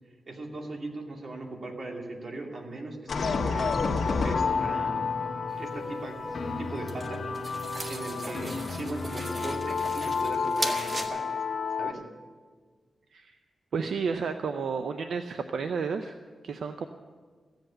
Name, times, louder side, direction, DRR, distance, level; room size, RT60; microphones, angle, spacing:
voice 1, 0.3-3.8 4.2-5.1 5.6-6.2 6.6-7.2 7.9-11.4 11.8-12.0, right 2 dB, 55° right, 1 dB, 2.6 m, -39 dB
sound 1, 3.1-11.9, left 4 dB, 65° left, 1.4 m, -30 dB
sound 2, 5.5-11.1, right 2 dB, 40° right, 1.6 m, -38 dB
voice 2, 13.7-16.1 16.4-16.9, right 5 dB, 85° right, 7 dB, 0.6 m, -31 dB
15.5 x 8.0 x 8.8 m, 1.5 s
cardioid pair, 75°, 0 cm